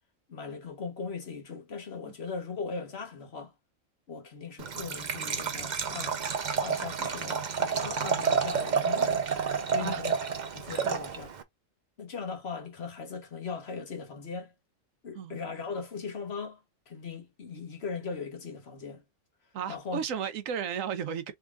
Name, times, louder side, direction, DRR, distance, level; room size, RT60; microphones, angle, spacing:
voice 1, 0.3-3.5 4.1-6.2 6.6-9.2 9.7-10.2 10.5-11.3 12.0-14.5 15.0-19.0 19.7-20.0, left 5 dB, 55° left, 1.4 m, -39 dB
Liquid, 4.6-11.4, right 6 dB, 45° right, 0.7 m, -30 dB
voice 2, 9.7-10.0 10.8-11.0 15.2-15.4 19.5-21.3, right 8 dB, 80° right, 1.1 m, -34 dB
3.7 x 3.2 x 3.4 m
omnidirectional pair, 1.4 m